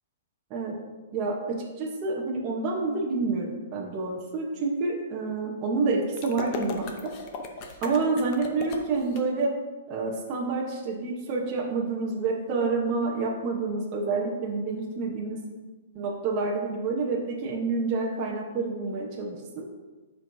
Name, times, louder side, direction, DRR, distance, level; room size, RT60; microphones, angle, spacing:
voice 1, 1.1-7.1 7.8-9.5 9.9-15.4 15.9-19.7, right 3 dB, 25° right, -3 dB, 0.8 m, -28 dB
sound 1, 6.2-9.2, left 4 dB, 30° left, 0.7 m, -37 dB
12.0 x 4.7 x 2.6 m, 1.3 s
hypercardioid pair, 170°, 0 cm